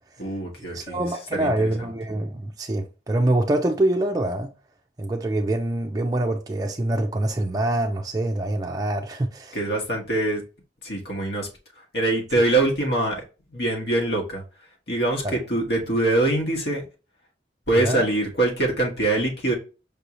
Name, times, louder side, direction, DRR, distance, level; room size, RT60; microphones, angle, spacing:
voice 1, 0.2-1.0 1.3-1.7 9.5-10.4 10.8-11.5 11.9-13.2 13.5-14.4 14.9-16.8 17.7-19.5, right 2 dB, 65° left, 1.4 m, -23 dB
voice 2, 0.7-4.5 5.0-9.6 15.2-15.4 17.8-18.0, right 1 dB, 20° right, 0.4 m, -25 dB
5.4 x 2.7 x 3.0 m
head